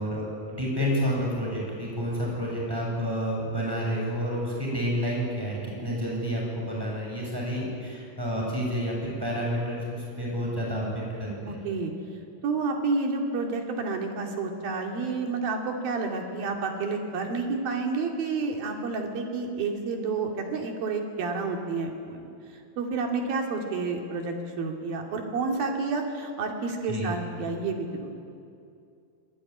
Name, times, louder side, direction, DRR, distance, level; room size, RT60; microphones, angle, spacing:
voice 1, 0.0-11.6 26.9-27.1, equal, 5° right, -3 dB, 7.7 m, -29 dB
voice 2, 11.5-11.9 12.4-22.3 22.8-28.2, right 4 dB, 80° right, 2 dB, 4.5 m, -30 dB
25.5 x 22.0 x 10.0 m, 2.5 s
omnidirectional pair, 4.1 m